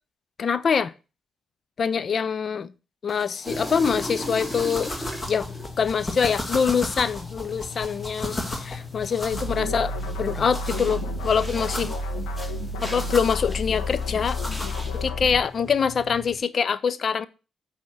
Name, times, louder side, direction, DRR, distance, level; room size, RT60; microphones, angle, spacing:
voice 1, 0.4-0.9 1.8-2.7 3.0-4.9 5.3-5.5 5.8-9.9 10.2-11.9 12.8-14.4 14.9-17.3, left 6 dB, 50° left, 0.5 m, -24 dB
sound 1, 3.1-15.1, left 1 dB, 30° left, 2.1 m, -37 dB
sound 2, 3.4-16.4, left 1 dB, 15° left, 2.7 m, -38 dB
sound 3, 9.3-15.4, left 1 dB, 75° left, 1.2 m, -30 dB
8.9 x 3.6 x 6.6 m
hypercardioid pair, 40°, 0 cm